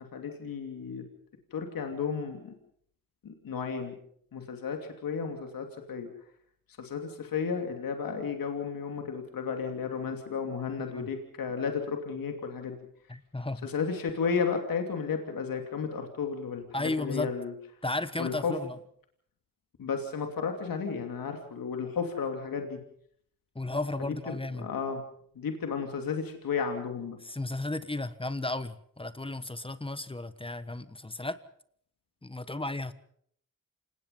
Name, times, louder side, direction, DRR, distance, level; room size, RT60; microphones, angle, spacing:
voice 1, 0.1-1.0 1.5-2.5 3.2-3.9 4.3-6.1 6.8-12.8 13.6-17.5 18.2-18.5 19.8-22.8 24.1-25.0 25.3-27.2, left 6 dB, 85° left, 5 dB, 2.9 m, -33 dB
voice 2, 10.8-11.1 13.1-13.7 16.7-17.3 17.8-18.8 23.5-24.7 27.2-31.4 32.2-32.9, left 2 dB, 15° left, 13 dB, 1.3 m, -34 dB
28.0 x 19.0 x 5.5 m, 0.64 s
cardioid pair, 70°, 33 cm